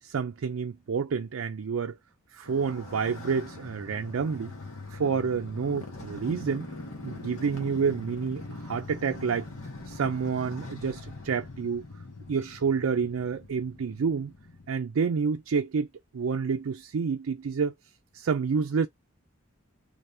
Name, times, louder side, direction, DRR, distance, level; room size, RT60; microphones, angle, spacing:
voice 1, 0.0-2.0 2.3-4.5 4.9-6.7 7.0-9.5 9.9-11.8 12.3-14.3 14.7-15.9 16.1-17.7 18.1-18.9, right 5 dB, 75° right, 0.4 m, -29 dB
Motorcycle, 2.5-14.7, left 2 dB, 80° left, 1.4 m, -42 dB
3.4 x 2.7 x 3.4 m
head